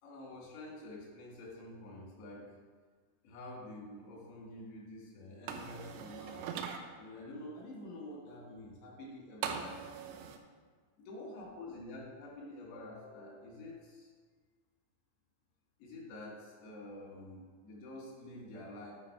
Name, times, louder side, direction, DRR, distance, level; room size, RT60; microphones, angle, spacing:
voice 1, 0.0-2.5 3.2-6.6 7.0-9.8 11.0-14.1 15.8-18.9, left 1 dB, 85° left, -2 dB, 4.0 m, -48 dB
sound 1, 5.5-6.8 9.4-10.4, right 7 dB, 80° right, 2.6 m, -40 dB
11.0 x 4.3 x 4.6 m, 1.6 s
omnidirectional pair, 4.8 m